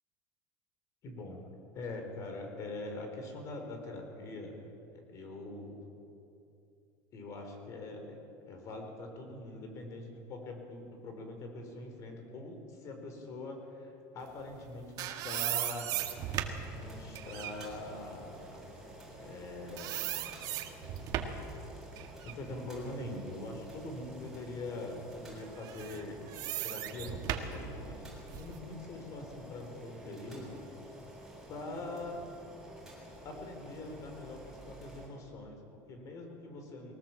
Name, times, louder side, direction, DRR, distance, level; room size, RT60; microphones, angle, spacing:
voice 1, 1.0-1.4 1.7-4.5 4.9-5.8 7.1-15.9 16.7-18.7 19.2-20.1 22.2-26.2 26.6-30.6 31.5-32.2 33.2-36.9, left 2 dB, 40° left, 4 dB, 4.6 m, -43 dB
sound 1, 14.5-19.5 19.8-21.5 22.0-23.9 24.4-24.5 25.6-28.6, right 11 dB, 50° right, 1.9 m, -38 dB
Boiling, 15.8-35.1, right 1 dB, 5° right, 7.2 m, -51 dB
22.0 x 19.0 x 7.7 m, 2.7 s
cardioid pair, 150°, 8 cm